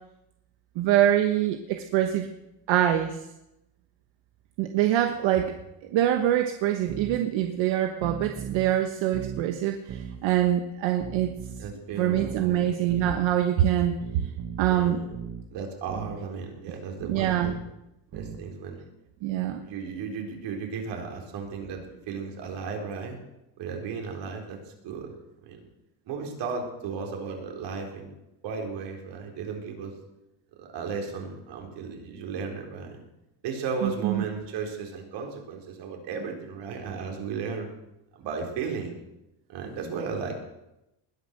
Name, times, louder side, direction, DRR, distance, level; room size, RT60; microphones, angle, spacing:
voice 1, 0.8-2.3 2.7-3.2 4.6-5.5 5.8-11.3 12.0-14.0 14.6-15.0 17.1-17.5 19.2-19.6 33.8-34.2, right 11 dB, 85° right, 6 dB, 1.4 m, -24 dB
sound 1, 6.9-7.2 8.0-8.7 9.1-9.5 9.9-10.2 11.0-11.7 12.1-12.4 12.9-13.2 14.0-14.7 15.1-15.5 15.9-16.2 17.0-17.7 18.1-18.5, right 8 dB, 40° right, 1.5 m, -38 dB
voice 2, 11.6-12.7 14.7-15.1 15.5-17.6 18.1-18.8 19.6-23.2 23.6-25.1 25.4-25.6 26.1-28.1 28.4-30.0 30.6-33.0 33.4-37.7 38.1-39.0 39.5-40.4, right 5 dB, 65° right, 2 dB, 4.3 m, -35 dB
20.5 x 9.9 x 6.7 m, 0.89 s
cardioid pair, 160°, 45 cm